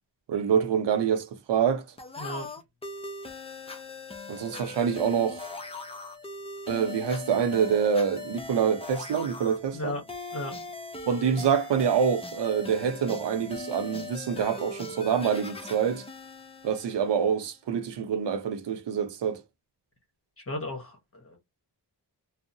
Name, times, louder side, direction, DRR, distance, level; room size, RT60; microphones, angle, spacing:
voice 1, 0.3-1.8 4.3-5.5 6.7-10.0 11.1-16.0 16.6-19.4, right 7 dB, 80° right, 0.6 m, -26 dB
sound 1, 2.0-17.5, left 3 dB, 15° left, 0.5 m, -40 dB
voice 2, 2.2-2.5 9.7-10.0 10.3-10.5 20.4-21.4, left 1 dB, 35° left, 1.0 m, -35 dB
2.7 x 2.0 x 2.5 m
wide cardioid pair, 105°, 42 cm